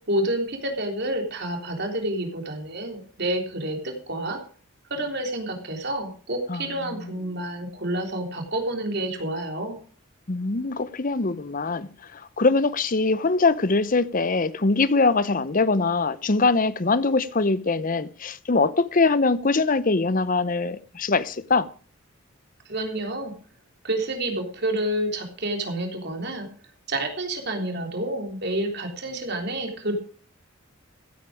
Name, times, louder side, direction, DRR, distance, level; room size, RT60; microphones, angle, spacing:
voice 1, 0.1-4.4 4.9-9.8 22.7-23.3 23.8-26.5 26.9-29.9, right 1 dB, 50° right, 3.5 m, -29 dB
voice 2, 6.5-7.2 10.3-21.7, left 3 dB, 40° left, 0.7 m, -23 dB
16.0 x 9.1 x 4.9 m
head